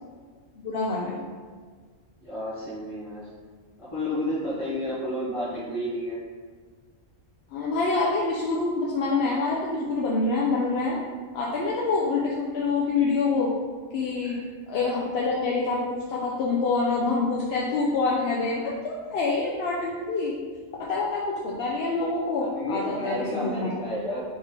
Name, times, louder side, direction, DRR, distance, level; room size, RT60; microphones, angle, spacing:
voice 1, 0.6-1.2 7.5-11.0 11.3-13.5 13.9-14.4 14.7-20.3 20.8-23.7, left 3 dB, 65° left, -4 dB, 0.8 m, -26 dB
voice 2, 2.2-3.2 3.8-6.2 14.2-14.4 22.4-24.2, left 1 dB, 30° left, -9 dB, 0.8 m, -31 dB
3.7 x 3.2 x 4.2 m, 1.5 s
omnidirectional pair, 1.3 m